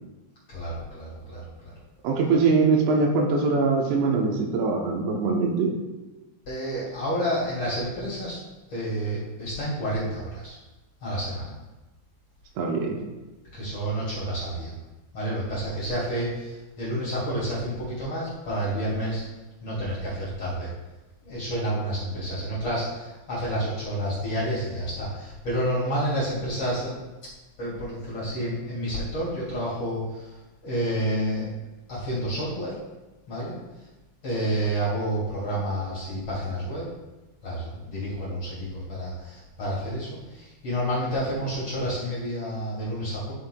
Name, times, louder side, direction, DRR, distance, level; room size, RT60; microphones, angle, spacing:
voice 1, 0.5-1.7 6.5-8.4 8.7-10.6 11.0-11.5 13.5-14.7 15.1-19.2 19.6-20.7 21.2-27.0 27.6-30.4 30.6-31.5 31.9-32.8 33.3-33.6 34.2-36.9 37.4-43.3, equal, 45° left, -9 dB, 2.3 m, -29 dB
voice 2, 2.0-5.7 12.6-13.0, right 4 dB, 85° right, 0 dB, 2.4 m, -22 dB
13.0 x 5.5 x 2.2 m, 1.1 s
omnidirectional pair, 5.9 m